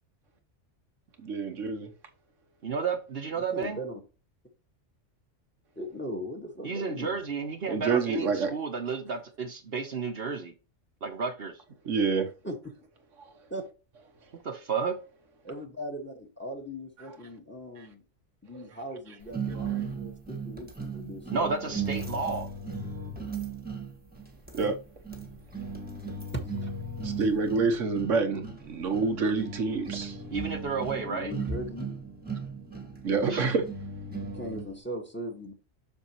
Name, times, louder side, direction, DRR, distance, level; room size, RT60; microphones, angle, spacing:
voice 1, 1.2-1.9 7.7-8.5 11.8-12.3 17.8-17.9 19.6-19.7 24.5-24.8 27.0-30.2 33.0-33.6, right 4 dB, 85° right, 1.5 m, -27 dB
voice 2, 2.6-3.8 6.6-10.5 11.0-11.5 14.4-14.9 21.3-22.5 30.3-31.3 33.3-33.5, right 5 dB, 55° right, 1.2 m, -32 dB
voice 3, 3.3-4.0 5.7-7.2 12.4-12.6 13.5-13.7 15.4-18.0 18.4-21.8 26.3-26.7 30.9-31.9 34.2-35.5, equal, 10° left, 1.6 m, -39 dB
sound 1, 19.3-34.8, right 4 dB, 10° right, 1.5 m, -37 dB
7.0 x 6.5 x 3.0 m
omnidirectional pair, 1.3 m